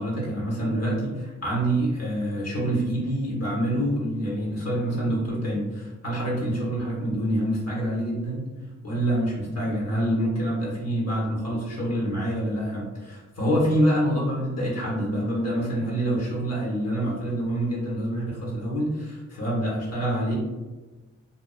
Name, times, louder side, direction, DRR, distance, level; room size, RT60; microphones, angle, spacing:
voice 1, 0.0-8.5 8.8-20.4, right 1 dB, 55° left, -5 dB, 1.1 m, -26 dB
2.6 x 2.3 x 2.3 m, 1.2 s
wide cardioid pair, 80°, 31 cm